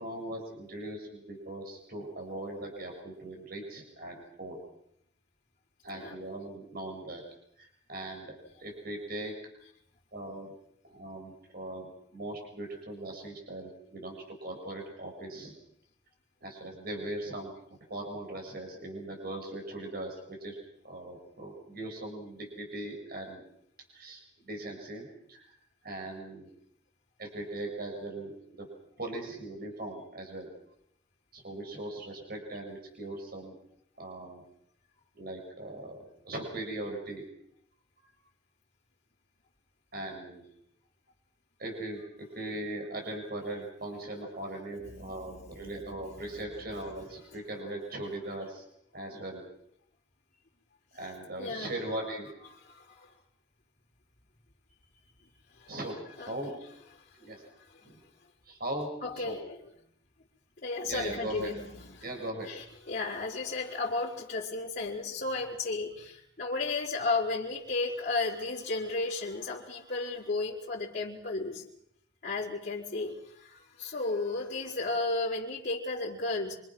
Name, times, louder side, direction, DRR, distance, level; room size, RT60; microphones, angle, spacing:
voice 1, 0.0-4.6 5.8-7.2 7.6-9.3 10.1-10.5 10.8-15.5 16.4-17.5 17.9-20.6 20.8-23.4 23.9-25.6 25.8-26.5 27.2-28.7 29.0-30.5 31.3-33.6 34.0-34.4 35.1-37.2 39.9-40.5 41.6-48.6 48.9-49.4 50.9-52.3 55.7-56.5 57.2-57.4 57.8-58.0 58.4-59.4 60.9-61.5 62.0-62.5 68.4-68.5, right 1 dB, 45° right, 2 dB, 6.7 m, -39 dB
voice 2, 44.8-45.7 46.0-46.1 46.3-46.4 46.9-47.0 51.4-51.7 52.7-53.1 55.6-55.7 56.2-56.3 57.6-57.7 59.0-59.6 60.6-62.0 62.5-71.6 72.2-76.5, left 3 dB, 40° left, -8 dB, 4.2 m, -34 dB
26.5 x 26.0 x 6.2 m, 0.72 s
head